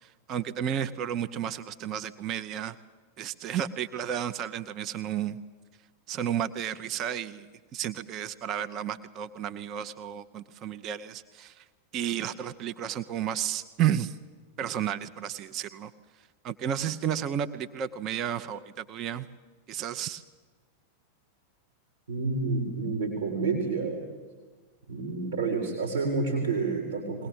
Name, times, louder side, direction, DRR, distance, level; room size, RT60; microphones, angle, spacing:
voice 1, 0.0-2.8 3.2-5.4 6.1-11.6 11.9-14.2 14.6-15.9 16.4-19.3 19.7-20.2, right 9 dB, 35° right, 12 dB, 0.8 m, -32 dB
voice 2, 22.1-24.0 24.9-27.3, right 4 dB, 70° right, 1 dB, 3.7 m, -29 dB
21.5 x 18.5 x 8.8 m, 1.4 s
figure-of-eight pair, 90°, 0 cm